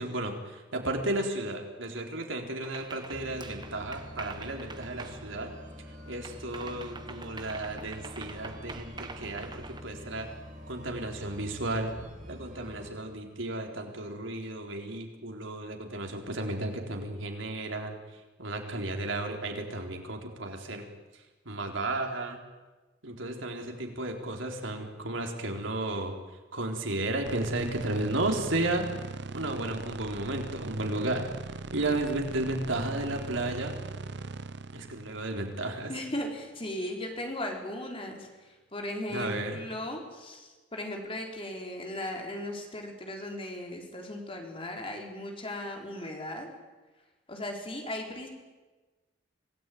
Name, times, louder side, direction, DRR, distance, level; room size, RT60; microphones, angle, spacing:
voice 1, 0.0-5.5 6.1-10.3 10.7-11.9 12.3-18.0 18.4-20.8 21.5-22.4 23.0-26.1 26.5-28.9 29.3-31.3 31.7-33.8 34.7-35.9 39.1-39.6, right 2 dB, 75° right, 3 dB, 4.0 m, -33 dB
sound 1, 2.6-5.9 6.2-9.8, right 3 dB, 20° right, 1.3 m, -45 dB
sound 2, 3.1-12.9, left 1 dB, 40° right, 4.9 m, -46 dB
sound 3, 27.2-36.4, right 3 dB, 60° right, 0.8 m, -40 dB
voice 2, 35.9-46.5 47.3-48.3, left 1 dB, 30° left, 2 dB, 4.2 m, -37 dB
25.5 x 18.0 x 9.4 m, 1.2 s
head